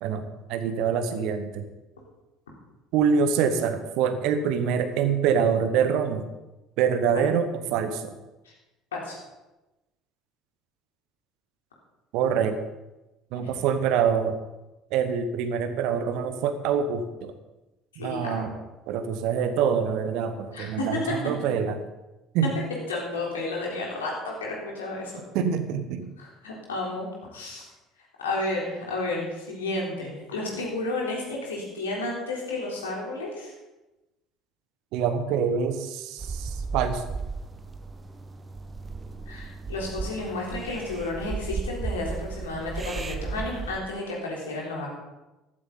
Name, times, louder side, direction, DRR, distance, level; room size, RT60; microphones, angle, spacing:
voice 1, 0.0-1.6 2.9-6.2 6.8-8.1 12.1-12.6 13.3-14.4 14.9-17.3 18.0-18.5 18.9-21.8 22.3-22.5 25.3-26.1 34.9-37.1, right 7 dB, 60° right, 9 dB, 1.2 m, -25 dB
voice 2, 17.9-18.4 20.5-21.1 22.9-25.1 26.2-27.7 28.2-33.5 39.3-44.9, left 2 dB, 75° left, -3 dB, 3.7 m, -32 dB
sound 1, 36.2-43.8, right 4 dB, 25° right, 1.2 m, -35 dB
14.5 x 13.5 x 4.0 m, 1.0 s
figure-of-eight pair, 60°, 0 cm